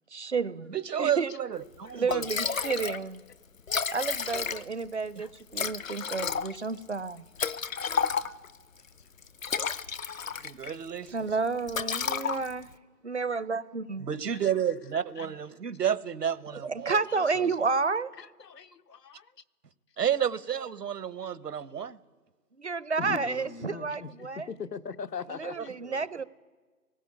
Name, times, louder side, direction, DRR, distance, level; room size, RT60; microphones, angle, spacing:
voice 1, 0.1-1.3 1.9-3.2 3.9-7.2 11.1-12.7 13.0-14.1 16.6-18.1 22.6-24.5 25.3-26.2, right 4 dB, 45° right, 0.6 m, -31 dB
voice 2, 0.7-2.3 10.4-11.1 14.0-17.5 20.0-22.0 25.9-26.0, right 9 dB, 75° right, 1.2 m, -31 dB
Liquid, 1.7-1.8 2.1-3.0 3.3-3.4 3.6-4.9 5.5-8.6 9.2-10.7 11.1-11.3 11.7-12.7, left 6 dB, 55° left, 0.8 m, -31 dB
voice 3, 1.8-2.6 4.0-4.2 5.2-6.3 6.7-6.8 7.7-8.4 9.0-9.1 10.7-11.4 12.3-12.5 14.3-15.3 17.1-18.7 19.0-19.3 20.2-20.5 23.0-25.7, left 6 dB, 80° left, 1.1 m, -44 dB
18.5 x 15.5 x 9.6 m
hypercardioid pair, 170°, 48 cm